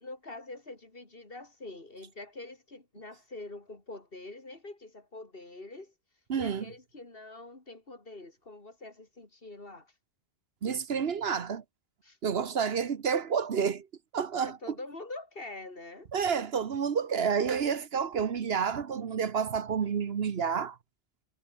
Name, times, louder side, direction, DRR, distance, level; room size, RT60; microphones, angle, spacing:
voice 1, 0.0-5.9 6.4-9.9 12.0-12.2 14.4-16.1, left 2 dB, 55° left, 4.1 m, -45 dB
voice 2, 6.3-6.6 10.6-11.6 12.2-13.9 14.1-14.7 16.1-20.8, right 6 dB, 65° right, 1.2 m, -29 dB
omnidirectional pair, 1.2 m